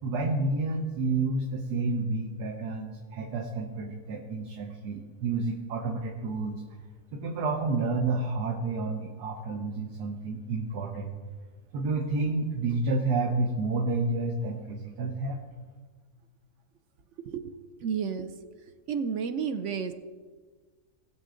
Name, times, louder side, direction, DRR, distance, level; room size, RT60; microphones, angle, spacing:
voice 1, 0.0-6.6 7.1-11.1 11.7-15.4, right 3 dB, 85° right, 1 dB, 1.6 m, -30 dB
voice 2, 17.2-17.5 17.8-18.4 18.9-19.9, right 6 dB, 60° right, 10 dB, 0.9 m, -31 dB
19.0 x 7.7 x 3.8 m, 1.5 s
omnidirectional pair, 1.7 m